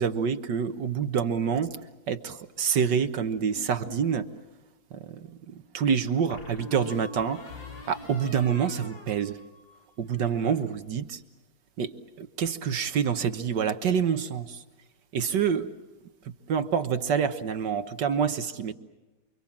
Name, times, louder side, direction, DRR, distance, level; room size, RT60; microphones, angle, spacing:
voice 1, 0.0-1.8 2.1-4.2 5.1-5.2 5.7-7.4 7.9-9.4 10.0-11.2 11.8-14.6 15.1-15.7 16.5-18.7, right 7 dB, 65° right, 10 dB, 1.7 m, -27 dB
sound 1, 3.6-4.4 6.3-9.8 10.1-10.6, left 3 dB, 70° left, 4.1 m, -44 dB
29.0 x 24.5 x 7.3 m, 1.1 s
omnidirectional pair, 2.1 m